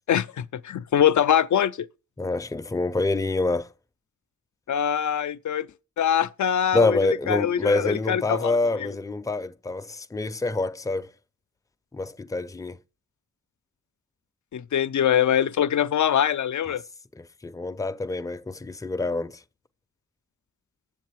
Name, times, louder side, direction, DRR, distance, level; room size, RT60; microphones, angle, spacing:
voice 1, 0.1-1.9 4.7-5.7 6.0-7.0 7.3-8.9 14.5-16.8, left 9 dB, 80° left, 0.5 m, -23 dB
voice 2, 2.2-3.7 6.7-11.1 11.9-12.8 17.2-19.4, left 2 dB, 10° left, 0.4 m, -26 dB
7.6 x 7.3 x 4.5 m
wide cardioid pair, 60°, 29 cm